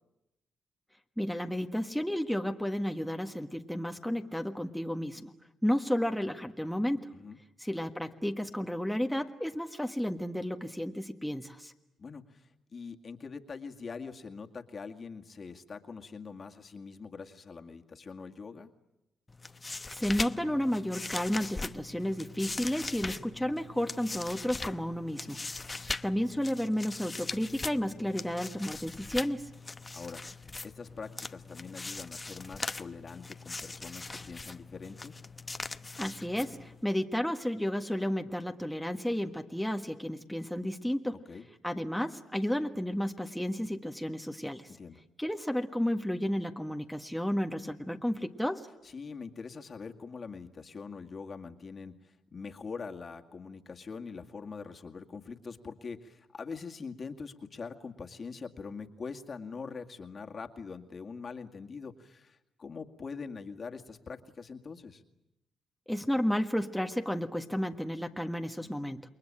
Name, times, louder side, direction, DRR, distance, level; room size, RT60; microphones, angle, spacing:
voice 1, 1.2-5.3 5.6-7.1 7.6-11.7 19.9-25.4 26.0-29.5 36.0-41.2 41.6-44.7 45.2-48.7 65.9-69.1, equal, ahead, 4 dB, 1.5 m, -32 dB
voice 2, 12.0-18.7 29.9-30.2 30.6-35.1 41.3-41.4 44.7-45.0 48.8-65.0, left 5 dB, 45° left, 4 dB, 2.1 m, -43 dB
sound 1, 19.3-36.9, left 3 dB, 25° left, 0.9 m, -41 dB
28.5 x 21.5 x 8.8 m, 0.91 s
supercardioid pair, 65°, 0 cm